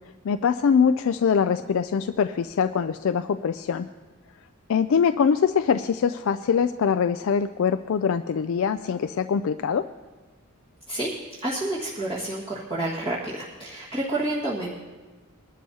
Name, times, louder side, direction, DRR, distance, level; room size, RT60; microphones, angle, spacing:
voice 1, 0.2-3.9 4.7-9.8, left 6 dB, 60° left, 8 dB, 0.3 m, -23 dB
voice 2, 11.4-14.8, right 1 dB, 25° right, -8 dB, 1.7 m, -29 dB
20.5 x 12.0 x 2.8 m, 1.3 s
head